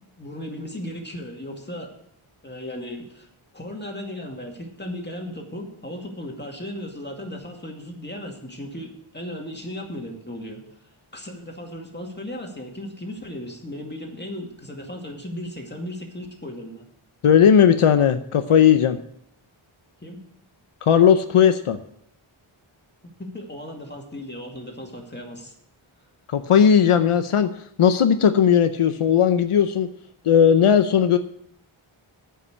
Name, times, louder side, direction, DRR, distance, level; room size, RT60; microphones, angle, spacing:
voice 1, 0.2-1.9 2.4-3.3 3.5-10.6 11.1-16.8 20.0-20.2 23.2-25.5, left 1 dB, 20° left, 1 dB, 2.3 m, -36 dB
voice 2, 17.2-19.0 20.8-21.8 26.3-27.5 27.8-29.9 30.2-31.2, left 8 dB, 80° left, 10 dB, 0.7 m, -17 dB
9.5 x 5.8 x 8.4 m, 0.72 s
wide cardioid pair, 80°, 50 cm